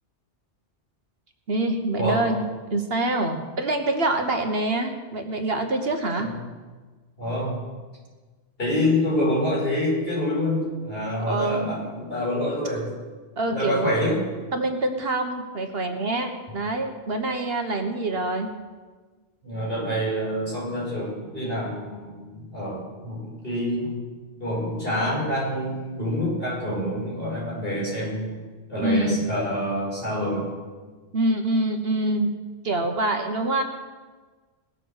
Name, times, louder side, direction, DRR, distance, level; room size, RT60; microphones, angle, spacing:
voice 1, 1.5-2.4 2.7-6.3 11.3-11.8 13.4-13.9 14.5-18.5 28.8-29.2 31.1-32.3 32.6-33.6, right 2 dB, 55° right, 5 dB, 1.4 m, -25 dB
voice 2, 7.2-7.6 8.6-12.9 13.5-14.2 19.4-24.0 24.4-28.4 28.7-30.5, left 1 dB, 50° left, -5 dB, 5.9 m, -27 dB
19.0 x 7.7 x 6.5 m, 1.4 s
omnidirectional pair, 1.2 m